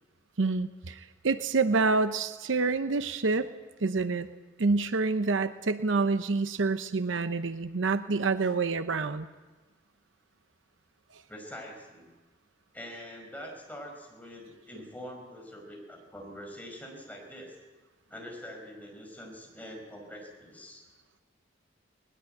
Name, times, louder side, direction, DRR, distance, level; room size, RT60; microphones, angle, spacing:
voice 1, 0.4-3.5 3.8-4.3 4.6-9.3, right 3 dB, 75° right, 11 dB, 0.8 m, -27 dB
voice 2, 11.3-12.1 12.7-17.6 18.1-20.8, equal, 10° left, 1 dB, 5.3 m, -44 dB
20.0 x 20.0 x 7.9 m, 1.2 s
head